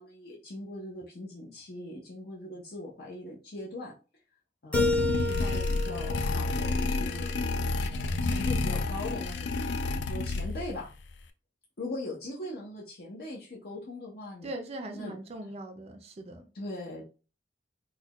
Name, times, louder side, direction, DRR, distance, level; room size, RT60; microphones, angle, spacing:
voice 1, 0.0-3.9 4.6-7.3 7.9-10.9 11.8-14.5 14.9-15.1 16.5-17.1, left 1 dB, 60° left, 0.7 m, -40 dB
sound 1, 4.7-10.8, left 3 dB, 80° left, 0.4 m, -30 dB
Keyboard (musical), 4.7-7.6, left 2 dB, 10° left, 0.7 m, -32 dB
voice 2, 14.4-16.5, right 1 dB, 35° right, 0.4 m, -40 dB
4.1 x 2.2 x 2.9 m
head